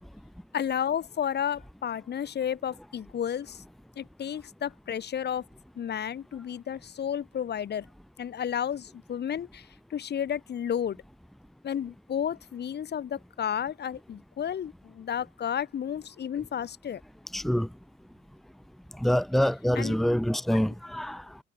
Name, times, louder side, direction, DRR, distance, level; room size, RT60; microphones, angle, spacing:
voice 1, 0.5-3.6 4.0-5.4 5.8-7.9 8.2-11.0 11.6-17.0 19.7-20.0, left 9 dB, 55° left, 2.7 m, -32 dB
voice 2, 17.3-17.7 18.9-21.4, equal, ahead, 1.4 m, -26 dB
cardioid pair, 90°, 20 cm